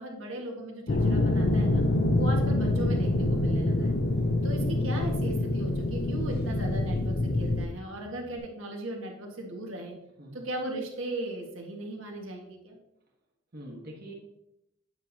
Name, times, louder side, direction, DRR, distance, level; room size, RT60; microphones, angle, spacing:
voice 1, 0.0-1.8 2.1-4.0 4.4-9.9 10.3-12.8, right 1 dB, 85° right, 1 dB, 1.6 m, -37 dB
sound 1, 0.9-7.7, left 1 dB, 50° left, 0.6 m, -26 dB
Bass guitar, 2.1-8.4, equal, ahead, 0.7 m, -43 dB
voice 2, 10.2-10.5 13.5-14.1, right 1 dB, 50° right, -2 dB, 1.3 m, -44 dB
8.8 x 5.9 x 2.8 m, 0.83 s
head